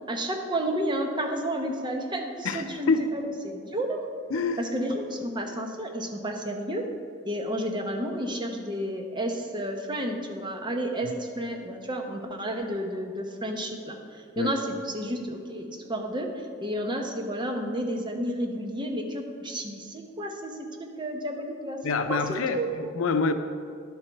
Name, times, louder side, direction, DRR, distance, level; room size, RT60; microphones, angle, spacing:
voice 1, 0.1-4.1 4.6-6.9 7.2-21.8 22.1-22.7, right 1 dB, 25° right, 3 dB, 0.9 m, -31 dB
voice 2, 2.4-3.1 4.3-4.6 14.4-14.5 21.8-23.3, left 4 dB, 90° left, 8 dB, 0.6 m, -26 dB
11.5 x 6.9 x 4.6 m, 2.2 s
head